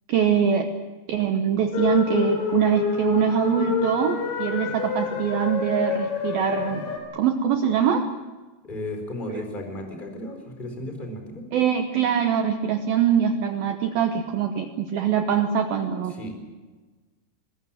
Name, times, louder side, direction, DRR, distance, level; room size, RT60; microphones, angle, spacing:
voice 1, 0.1-0.7 1.1-6.8 7.1-8.1 11.5-16.2, right 8 dB, 85° right, 6 dB, 2.1 m, -23 dB
sound 1, 1.7-7.0, left 6 dB, 85° left, 6.3 m, -27 dB
voice 2, 8.6-11.5 16.1-16.3, left 1 dB, 10° left, 4 dB, 4.1 m, -34 dB
24.0 x 21.0 x 7.6 m, 1.3 s
omnidirectional pair, 5.8 m